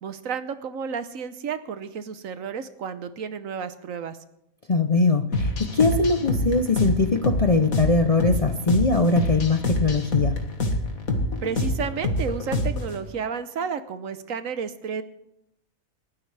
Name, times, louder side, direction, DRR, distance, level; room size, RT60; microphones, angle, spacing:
voice 1, 0.0-4.2 11.4-15.0, right 6 dB, 70° right, 11 dB, 1.3 m, -32 dB
voice 2, 4.7-10.4, left 3 dB, 40° left, 6 dB, 0.6 m, -21 dB
sound 1, 5.3-13.0, left 1 dB, 80° left, 2.1 m, -26 dB
28.5 x 12.0 x 3.4 m, 0.83 s
omnidirectional pair, 1.5 m